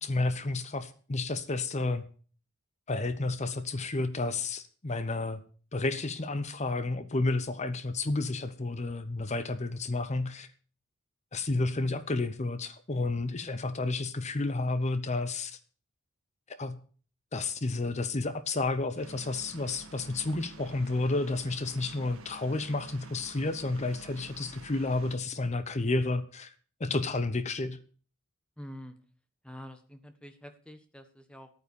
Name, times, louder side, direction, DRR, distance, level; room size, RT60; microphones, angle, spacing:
voice 1, 0.0-2.0 2.9-5.4 5.7-10.5 11.3-15.6 16.6-16.8 17.3-26.5 26.8-27.8, left 2 dB, 35° left, 12 dB, 0.8 m, -31 dB
sound 1, 19.0-25.2, right 3 dB, 85° right, 1.5 m, -50 dB
voice 2, 24.3-24.6 28.6-28.9 29.4-31.5, equal, 5° left, 8 dB, 1.4 m, -47 dB
11.5 x 9.3 x 6.9 m, 0.41 s
head